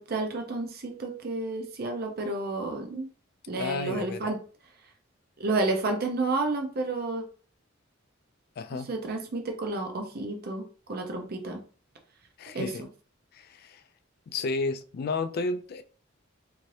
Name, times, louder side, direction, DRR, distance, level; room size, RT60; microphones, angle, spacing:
voice 1, 0.0-3.1 3.5-4.4 5.4-7.2 8.7-10.6 10.9-11.6 12.5-12.7, right 2 dB, 50° right, 0.6 m, -30 dB
voice 2, 3.5-4.3 8.6-8.9 12.4-12.9 13.3-13.8 14.3-15.8, left 3 dB, 50° left, 0.3 m, -32 dB
2.8 x 2.6 x 3.1 m
head